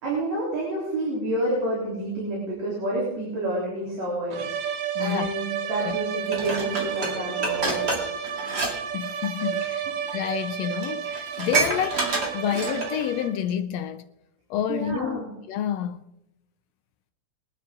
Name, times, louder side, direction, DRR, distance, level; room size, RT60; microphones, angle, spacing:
voice 1, 0.0-8.5 9.4-9.7 14.7-15.3, right 1 dB, 60° right, 4.9 m, -29 dB
sound 1, 4.3-13.5, right 9 dB, 80° right, 2.5 m, -31 dB
voice 2, 4.9-5.3 5.8-6.0 8.9-9.8 10.1-14.0 14.5-16.0, left 10 dB, 80° left, 1.5 m, -29 dB
Dishes pots and pans, 6.3-8.7 9.0-9.3 10.1-10.2 10.5-10.6 10.8-13.0 13.5-13.6, right 3 dB, 35° right, 2.6 m, -28 dB
22.5 x 10.0 x 3.8 m
omnidirectional pair, 3.5 m